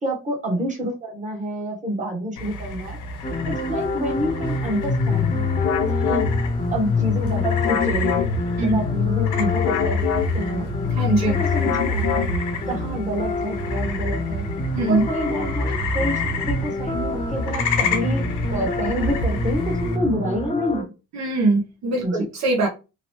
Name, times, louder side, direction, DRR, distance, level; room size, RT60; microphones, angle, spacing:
voice 1, 0.0-3.0 3.4-5.4 6.0-6.3 6.7-10.7 11.3-12.4 12.7-14.4 14.9-20.9 22.0-22.2, equal, 25° right, 0 dB, 1.1 m, -28 dB
sound 1, 2.4-20.0, left 2 dB, 80° left, 0.9 m, -30 dB
sound 2, 3.2-20.8, left 1 dB, 20° left, 0.6 m, -28 dB
sound 3, 4.7-12.7, left 7 dB, 60° left, 0.5 m, -24 dB
voice 2, 10.9-11.4 14.7-15.0 21.1-22.7, right 2 dB, 65° right, 1 dB, 0.8 m, -21 dB
2.9 x 2.0 x 2.9 m, 0.29 s
cardioid pair, 90°, 30 cm